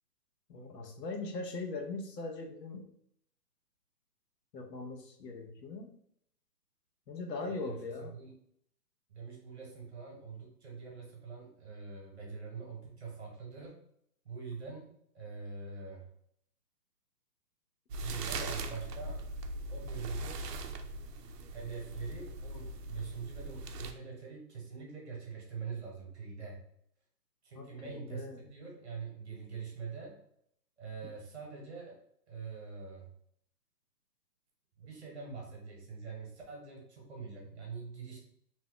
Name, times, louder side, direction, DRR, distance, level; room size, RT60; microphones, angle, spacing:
voice 1, 0.5-2.9 4.5-5.9 7.1-8.1 18.1-18.2 27.5-28.4, left 3 dB, 75° left, 2 dB, 0.9 m, -40 dB
voice 2, 7.5-8.3 9.1-13.8 14.2-16.1 18.0-19.2 19.7-20.4 21.5-26.6 27.4-30.2 30.8-32.0 32.3-33.1 34.8-38.2, right 5 dB, 40° right, -1 dB, 1.1 m, -44 dB
sound 1, 17.9-23.9, right 2 dB, 75° right, 0.6 m, -40 dB
2.8 x 2.2 x 3.6 m, 0.70 s
hypercardioid pair, 170°, 49 cm